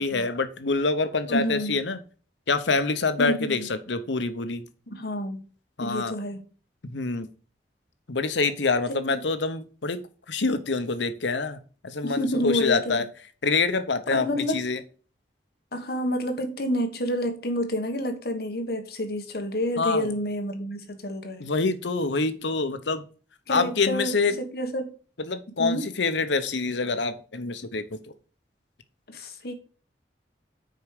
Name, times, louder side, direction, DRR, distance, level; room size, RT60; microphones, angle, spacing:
voice 1, 0.0-2.0 2.5-4.6 5.8-6.1 6.8-7.3 8.1-10.0 10.3-11.6 11.8-13.0 13.4-14.8 19.8-20.1 21.4-23.0 23.5-24.3 25.2-28.0, left 4 dB, 90° left, 0.9 m, -26 dB
voice 2, 1.3-1.8 3.2-3.7 4.9-5.4 5.8-6.4 9.0-9.2 12.0-13.0 14.1-14.7 15.7-21.4 23.5-24.9 25.6-25.9 29.1-29.5, equal, 60° left, 1.3 m, -29 dB
6.5 x 4.8 x 6.5 m
head